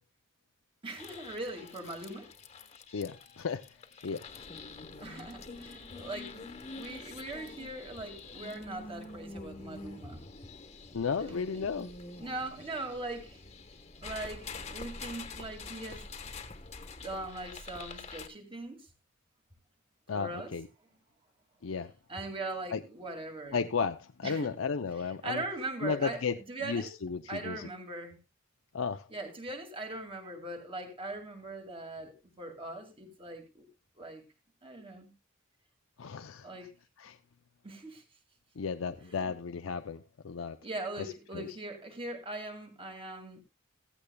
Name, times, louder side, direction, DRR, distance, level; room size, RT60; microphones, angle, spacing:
voice 1, 0.8-2.3 5.0-10.3 11.2-11.7 12.2-13.4 14.0-16.1 17.0-18.8 20.1-20.5 22.1-23.6 24.2-24.5 25.2-26.2 26.5-26.9 27.3-28.2 29.1-33.7 34.0-34.2 34.6-35.1 36.4-36.7 37.6-38.0 39.1-39.3 40.6-43.4, right 2 dB, 25° right, 2.3 m, -40 dB
sound 1, 1.0-18.3, left 3 dB, 30° left, 1.2 m, -46 dB
voice 2, 2.9-3.6 4.0-4.3 10.9-11.9 20.1-20.7 21.6-21.9 22.7-22.8 23.5-25.4 25.8-26.4 26.6-27.7 28.7-29.1 36.0-36.5 37.0-37.2 38.6-40.6 41.0-41.5, left 5 dB, 80° left, 0.6 m, -34 dB
15.5 x 15.5 x 2.3 m
head